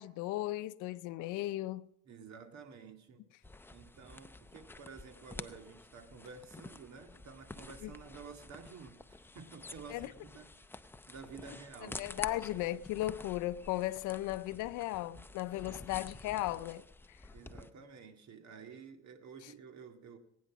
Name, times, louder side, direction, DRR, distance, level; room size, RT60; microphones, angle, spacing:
voice 1, 0.0-1.9 7.8-7.9 9.9-10.1 11.8-17.2, left 16 dB, 65° left, 0.6 m, -36 dB
voice 2, 2.0-3.2 3.7-12.4 15.6-15.9 17.3-20.2, right 5 dB, 55° right, 2.0 m, -52 dB
sound 1, 3.4-17.7, left 2 dB, 5° left, 0.6 m, -49 dB
20.0 x 9.5 x 6.0 m
supercardioid pair, 105°, 34 cm